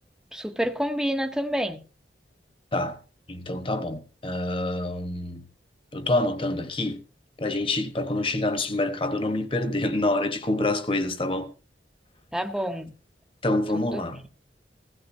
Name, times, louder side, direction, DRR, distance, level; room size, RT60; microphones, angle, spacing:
voice 1, 0.3-1.8 12.3-12.9 13.7-14.0, equal, 5° right, 0.7 m, -28 dB
voice 2, 3.3-5.4 5.9-7.0 7.4-11.5 13.4-14.2, left 2 dB, 30° left, 1.2 m, -27 dB
16.0 x 15.5 x 2.7 m
head